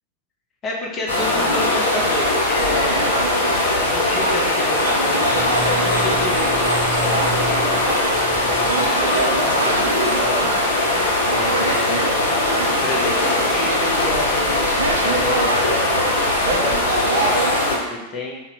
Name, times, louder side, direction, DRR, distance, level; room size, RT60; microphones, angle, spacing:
voice 1, 0.6-3.1 3.6-7.9 8.4-10.9 11.3-12.1 12.8-14.7 15.0-18.4, left 2 dB, 30° left, -2 dB, 0.7 m, -30 dB
sound 1, 1.1-17.8, left 2 dB, 65° left, 0.6 m, -20 dB
sound 2, 1.6-17.5, right 3 dB, 75° right, 0.3 m, -27 dB
sound 3, 5.3-10.2, right 2 dB, 30° right, 0.8 m, -32 dB
3.9 x 2.1 x 2.7 m, 1.0 s
figure-of-eight pair, 90°, 0 cm